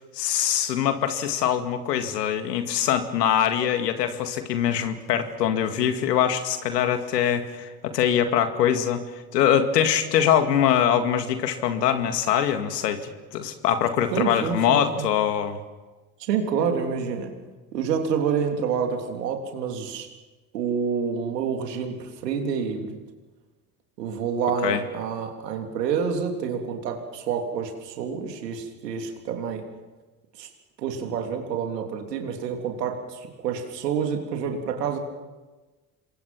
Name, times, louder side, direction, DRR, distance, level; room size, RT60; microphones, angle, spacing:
voice 1, 0.1-9.0 9.3-15.6 24.6-24.8, left 9 dB, 85° left, 8 dB, 2.2 m, -23 dB
voice 2, 14.1-15.1 16.2-17.3 17.7-20.1 20.5-23.0 24.0-29.6 30.4-30.5 30.8-35.0, right 6 dB, 85° right, 4 dB, 3.5 m, -28 dB
27.5 x 22.5 x 6.1 m, 1.2 s
hypercardioid pair, 65°, 48 cm